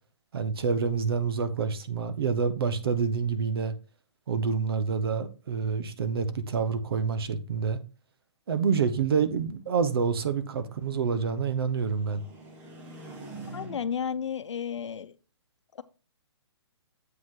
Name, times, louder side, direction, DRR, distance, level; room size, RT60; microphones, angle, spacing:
voice 1, 0.3-3.7 4.3-7.8 8.5-12.2, right 5 dB, 55° right, 1.0 m, -27 dB
sound 1, 9.4-14.2, right 2 dB, 10° right, 0.9 m, -47 dB
voice 2, 13.5-15.2 15.7-15.8, left 7 dB, 90° left, 0.7 m, -32 dB
8.0 x 5.2 x 3.8 m
hypercardioid pair, 170°, 15 cm